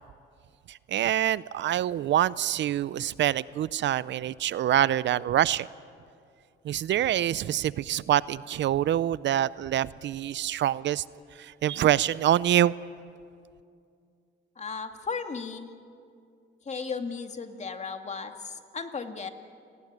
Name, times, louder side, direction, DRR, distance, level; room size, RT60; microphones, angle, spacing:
voice 1, 0.7-5.7 6.6-11.0 11.3-12.7, right 11 dB, 65° right, 19 dB, 0.6 m, -25 dB
voice 2, 14.6-15.7 16.7-19.3, left 5 dB, 35° left, 6 dB, 2.2 m, -35 dB
29.0 x 19.5 x 9.5 m, 2.4 s
cardioid pair, 90°, 20 cm